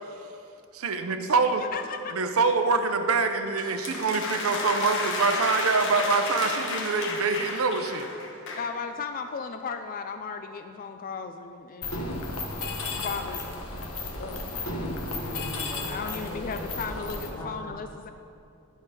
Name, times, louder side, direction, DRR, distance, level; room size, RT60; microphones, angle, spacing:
voice 1, 0.7-1.6 2.1-8.1, right 4 dB, 80° right, 7 dB, 0.7 m, -25 dB
voice 2, 1.6-2.2 8.5-12.1 13.0-13.4 14.2-14.5 15.9-18.1, left 5 dB, 40° left, 8 dB, 0.3 m, -35 dB
sound 1, 3.6-8.7, left 3 dB, 60° left, 1.2 m, -32 dB
Mechanisms, 11.8-17.3, left 2 dB, 85° left, 1.2 m, -34 dB
voice 3, 14.7-17.6, equal, 20° left, -3 dB, 1.6 m, -40 dB
10.5 x 6.4 x 4.8 m, 2.6 s
head